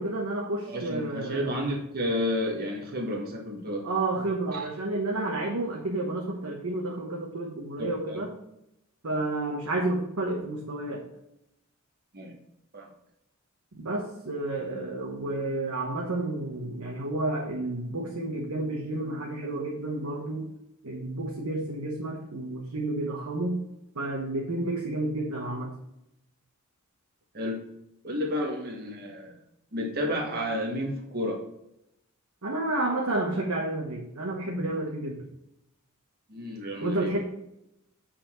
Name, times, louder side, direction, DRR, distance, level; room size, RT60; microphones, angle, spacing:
voice 1, 0.0-1.5 3.8-8.3 9.0-11.1 13.7-20.5 20.8-23.6 23.9-25.8 32.4-35.2 36.8-37.2, right 2 dB, 80° right, -2 dB, 1.1 m, -30 dB
voice 2, 0.7-3.8 4.5-4.6 7.8-8.2 12.1-12.3 12.7-12.9 27.3-27.6 28.0-29.3 29.7-31.4 34.6-34.7 36.3-37.1, equal, 45° right, -1 dB, 1.4 m, -31 dB
8.0 x 4.3 x 4.3 m, 0.83 s
head